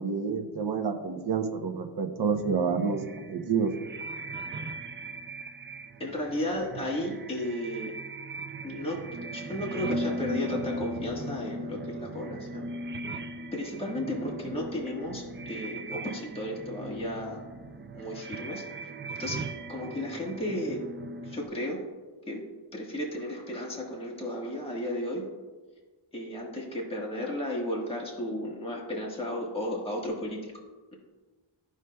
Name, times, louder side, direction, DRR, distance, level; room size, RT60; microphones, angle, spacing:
voice 1, 0.0-3.0 3.3-3.7, right 5 dB, 50° right, 5 dB, 0.8 m, -28 dB
sound 1, 2.4-21.5, right 1 dB, 25° right, 0.3 m, -38 dB
voice 2, 6.0-7.9 8.6-9.0 9.3-12.7 13.5-17.4 17.9-19.4 19.7-20.8 21.2-21.8 22.3-22.4 22.7-25.2 26.1-30.5, left 1 dB, 10° left, -3 dB, 1.4 m, -34 dB
14.0 x 4.9 x 2.3 m, 1.3 s
wide cardioid pair, 125°, 49 cm